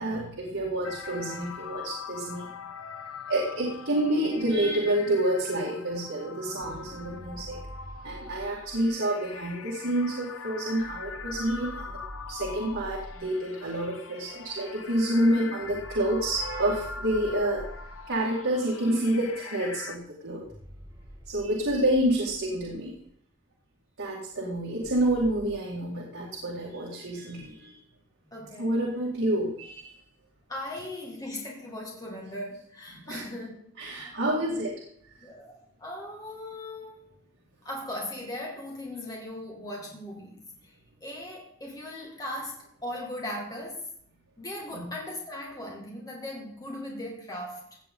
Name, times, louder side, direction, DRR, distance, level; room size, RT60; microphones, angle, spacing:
voice 1, 0.0-2.5 3.3-7.6 8.0-11.9 12.3-17.6 18.1-20.4 21.3-22.9 24.0-27.8 28.6-29.9 32.9-33.2 33.8-34.7 44.7-44.9, right 1 dB, 70° right, -4 dB, 2.4 m, -28 dB
sound 1, 0.8-20.0, left 5 dB, 85° left, 1.0 m, -42 dB
sound 2, 6.6-8.9 10.8-13.3 15.6-18.2 20.4-23.0 24.8-25.5, equal, 15° right, 1.7 m, -45 dB
voice 2, 28.3-28.8 30.5-34.7 35.2-37.2 37.6-40.8 41.0-43.9 44.4-47.8, left 1 dB, 15° left, -2 dB, 2.1 m, -39 dB
16.0 x 7.9 x 3.9 m, 0.66 s
head